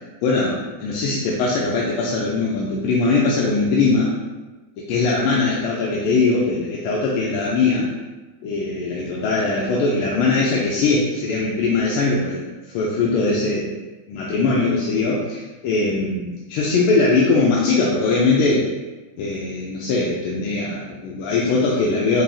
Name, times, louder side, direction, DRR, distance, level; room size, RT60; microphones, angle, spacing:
voice 1, 0.2-4.1 4.9-7.9 8.4-13.7 14.1-18.7 19.2-22.2, left 3 dB, 85° left, -4 dB, 1.4 m, -21 dB
4.8 x 2.6 x 2.6 m, 1.2 s
omnidirectional pair, 2.3 m